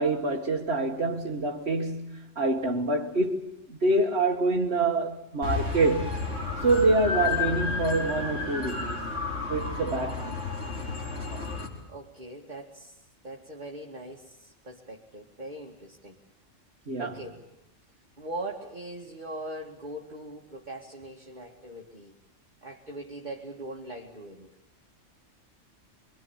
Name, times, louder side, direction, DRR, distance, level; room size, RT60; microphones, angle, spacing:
voice 1, 0.0-6.2 6.6-9.0 9.5-10.4 16.9-17.2, right 2 dB, 55° right, 1.9 m, -26 dB
ambulance sound, 5.4-11.7, left 4 dB, 60° left, 5.3 m, -31 dB
voice 2, 11.9-12.9 13.2-16.2 17.0-17.5 18.2-22.2 22.6-24.5, right 1 dB, 35° right, 2.4 m, -41 dB
26.5 x 23.5 x 7.3 m
omnidirectional pair, 1.3 m